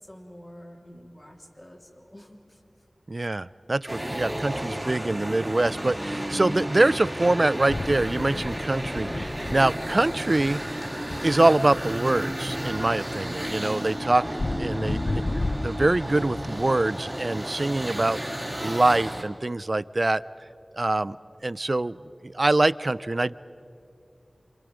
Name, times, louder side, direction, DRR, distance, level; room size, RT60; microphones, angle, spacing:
voice 1, 0.0-2.6, equal, 30° left, 1 dB, 2.8 m, -47 dB
voice 2, 3.1-10.6 11.2-14.2 14.6-15.2 15.5-18.2 18.6-20.2 20.7-21.2 21.4-22.0 22.2-23.3, right 2 dB, 45° right, 17 dB, 0.4 m, -24 dB
sound 1, 3.9-19.2, right 1 dB, 5° right, 2.9 m, -33 dB
sound 2, 7.7-16.7, left 2 dB, 55° left, 0.5 m, -34 dB
28.0 x 27.0 x 5.1 m, 2.7 s
wide cardioid pair, 65°, 0 cm